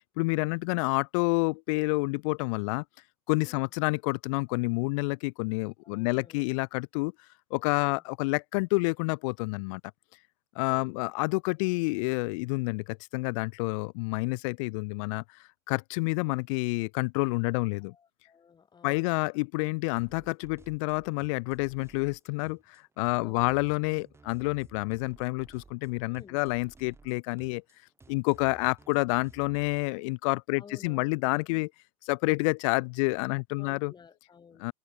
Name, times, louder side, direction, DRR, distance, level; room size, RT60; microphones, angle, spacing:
voice 1, 0.2-2.8 3.3-7.1 7.5-9.8 10.6-15.2 15.7-17.9 18.8-27.6 28.1-31.7 32.0-33.9 34.6-34.7, left 29 dB, 60° left, 0.5 m, -29 dB
voice 2, 5.8-6.5 10.7-11.0 17.8-19.3 23.0-23.6 26.1-26.4 30.5-31.2 33.6-34.7, left 6 dB, 20° left, 5.3 m, -53 dB
sound 1, 20.0-29.9, right 4 dB, 15° right, 2.7 m, -56 dB
hypercardioid pair, 110°, 19 cm